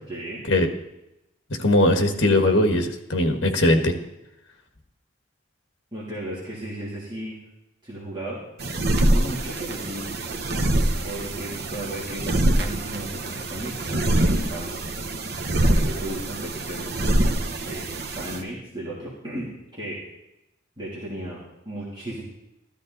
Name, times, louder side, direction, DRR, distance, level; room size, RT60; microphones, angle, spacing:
voice 1, 0.1-0.4 5.9-7.4 7.8-8.4 9.0-10.1 11.0-14.8 15.7-17.3 17.6-20.0 20.8-22.2, right 1 dB, 20° right, -7 dB, 3.0 m, -35 dB
voice 2, 1.6-3.9, left 1 dB, 55° left, 5 dB, 1.7 m, -20 dB
sound 1, 8.6-18.4, right 1 dB, 50° right, 1.1 m, -25 dB
13.5 x 13.5 x 4.1 m, 0.87 s
head